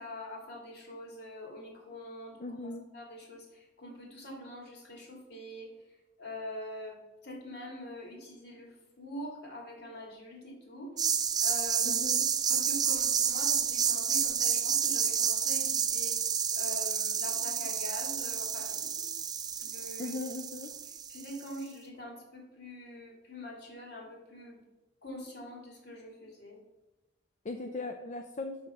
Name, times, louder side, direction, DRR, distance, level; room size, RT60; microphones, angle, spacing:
voice 1, 0.0-2.4 2.9-3.5 3.8-5.7 6.2-7.0 7.2-8.7 9.0-10.9 11.4-12.0 12.5-16.2 16.5-19.1 19.6-20.1 21.1-24.6 25.0-26.6, left 1 dB, 60° left, 0 dB, 2.3 m, -44 dB
voice 2, 2.4-2.8 11.8-12.3 20.0-20.7 27.4-28.6, left 3 dB, 40° left, 6 dB, 0.4 m, -38 dB
sound 1, 11.0-21.5, right 7 dB, 20° right, 0.4 m, -30 dB
5.7 x 5.7 x 4.9 m, 1.1 s
head